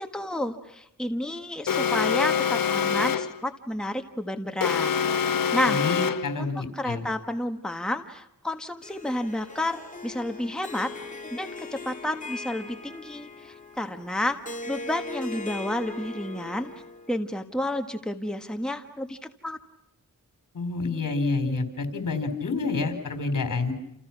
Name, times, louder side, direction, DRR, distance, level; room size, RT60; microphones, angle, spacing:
voice 1, 0.0-4.9 5.5-5.8 6.4-10.9 11.3-14.4 14.7-16.7 17.1-19.6, left 1 dB, ahead, 5 dB, 1.6 m, -31 dB
Alarm, 1.7-3.4 4.6-6.4, left 7 dB, 90° left, 0.9 m, -25 dB
voice 2, 5.7-7.0 20.5-23.7, left 3 dB, 65° left, 8 dB, 4.5 m, -28 dB
Harp, 8.8-17.2, left 3 dB, 25° left, 3.0 m, -40 dB
29.5 x 29.0 x 6.1 m, 0.79 s
wide cardioid pair, 100°, 33 cm